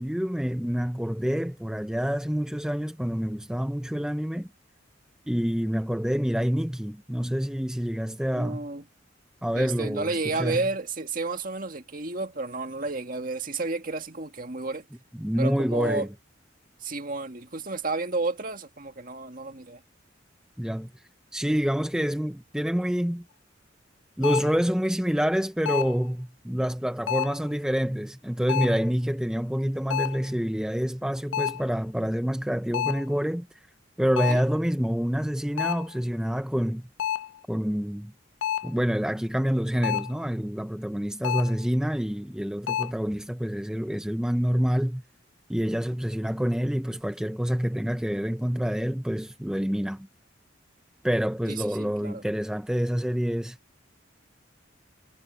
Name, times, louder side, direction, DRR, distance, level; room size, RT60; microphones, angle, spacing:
voice 1, 0.0-4.5 5.3-8.7 9.4-10.6 15.2-16.1 20.6-20.9 21.3-23.2 24.2-33.5 34.0-36.9 37.5-38.1 38.6-45.0 45.5-50.1 51.0-53.6, equal, 5° right, 0.5 m, -27 dB
voice 2, 8.3-8.8 9.5-14.9 15.4-16.1 16.8-19.8 34.3-34.4 51.5-52.2, right 3 dB, 45° right, 1.9 m, -31 dB
sound 1, 24.2-24.6 25.7-26.1 27.1-27.5 28.5-28.9 29.9-30.3 31.3-31.7 32.7-33.1 34.2-34.5 35.6-35.9 37.0-37.4 38.4-38.8 39.8-40.2 41.2-41.6 42.7-42.9, left 11 dB, 70° left, 0.4 m, -29 dB
head